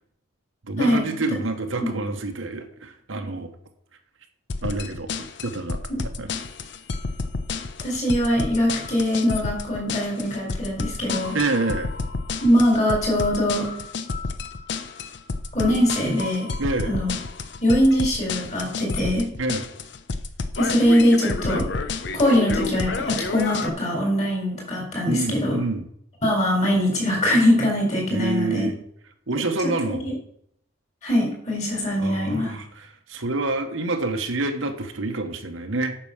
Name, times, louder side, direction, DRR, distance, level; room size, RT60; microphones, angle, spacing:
voice 1, 0.7-3.5 4.6-5.1 5.4-5.8 6.2-6.3 11.3-11.9 16.6-16.9 19.4-19.7 25.0-25.9 28.1-28.7 29.3-30.1 32.0-35.9, right 2 dB, 75° right, 5 dB, 1.3 m, -27 dB
sound 1, 4.5-23.7, left 3 dB, 55° left, 0.7 m, -30 dB
voice 2, 7.8-11.4 12.4-13.7 15.5-16.5 16.9-17.1 17.6-19.3 20.6-21.7 22.1-25.6 26.2-28.7 30.0-30.1 31.0-32.5, equal, 35° left, -1 dB, 4.1 m, -22 dB
9.0 x 5.9 x 6.6 m, 0.69 s
head